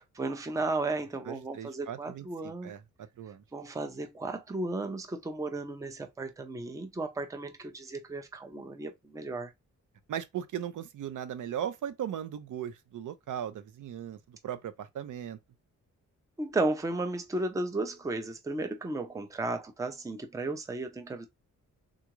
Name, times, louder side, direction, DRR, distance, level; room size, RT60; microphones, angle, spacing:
voice 1, 0.1-2.7 3.5-9.5 16.4-21.3, right 2 dB, 10° right, 0.4 m, -34 dB
voice 2, 1.2-3.4 10.1-15.4, right 9 dB, 75° right, 0.6 m, -38 dB
3.7 x 2.4 x 3.0 m
wide cardioid pair, 175°, 31 cm